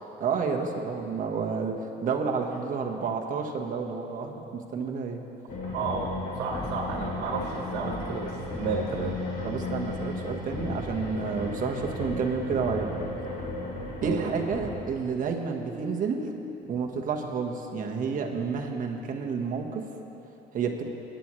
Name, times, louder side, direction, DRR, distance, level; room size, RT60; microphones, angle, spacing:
voice 1, 0.2-5.2 9.4-13.0 14.0-16.2 16.7-19.9 20.5-20.8, right 5 dB, 50° right, 2 dB, 1.4 m, -30 dB
sound 1, 5.5-14.7, left 2 dB, 60° left, 2.9 m, -34 dB
voice 2, 5.7-6.1 6.3-9.1 14.0-14.3, right 4 dB, 75° right, -1 dB, 1.6 m, -32 dB
22.5 x 10.5 x 3.2 m, 3.0 s
cardioid pair, 110°, 17 cm